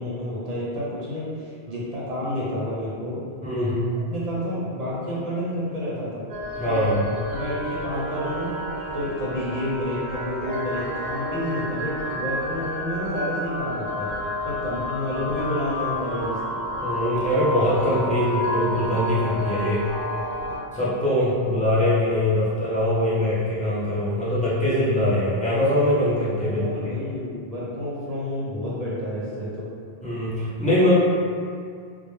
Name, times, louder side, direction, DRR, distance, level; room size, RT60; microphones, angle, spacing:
voice 1, 0.0-3.2 3.5-3.7 4.1-6.2 6.6-6.9 7.3-8.5 8.9-14.1 14.4-16.6 20.4-20.5 26.4-29.7, left 1 dB, 45° right, -7 dB, 0.6 m, -30 dB
voice 2, 3.4-3.9 6.6-7.0 16.8-19.9 20.7-26.9 30.0-30.9, left 1 dB, 10° left, -11 dB, 0.4 m, -22 dB
sound 1, 6.3-20.6, equal, 75° right, 0.9 m, -30 dB
2.2 x 2.1 x 3.0 m, 2.2 s
omnidirectional pair, 1.1 m